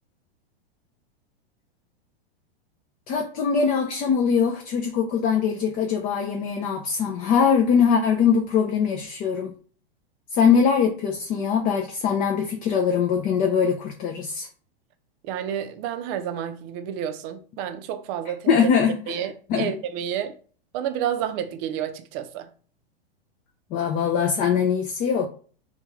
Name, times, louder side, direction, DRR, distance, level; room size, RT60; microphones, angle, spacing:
voice 1, 3.1-9.5 10.3-14.5 18.5-19.0 19.5-19.7 23.7-25.3, left 6 dB, 30° left, 0.4 m, -22 dB
voice 2, 15.2-18.7 19.1-20.4 20.7-22.5, right 9 dB, 40° right, 0.5 m, -30 dB
3.4 x 2.3 x 3.0 m
hypercardioid pair, 110°, 30 cm